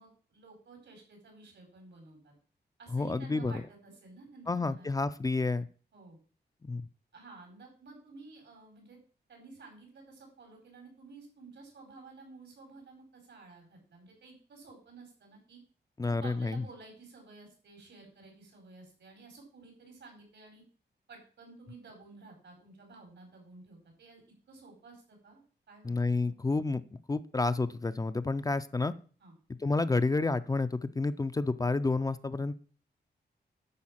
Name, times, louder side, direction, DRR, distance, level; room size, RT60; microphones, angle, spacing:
voice 1, 0.0-2.3 2.8-4.9 5.9-6.2 7.1-9.0 9.3-15.6 16.0-20.6 21.1-24.2 24.5-25.4 25.7-25.9 26.2-26.3 29.2-29.3, right 3 dB, 85° right, 2 dB, 4.4 m, -52 dB
voice 2, 2.9-3.6 4.5-5.7 6.6-6.9 16.0-16.6 25.8-26.8 27.1-28.9 29.6-32.5, left 3 dB, 20° left, 12 dB, 0.4 m, -30 dB
10.5 x 4.8 x 7.3 m, 0.41 s
wide cardioid pair, 165°, 18 cm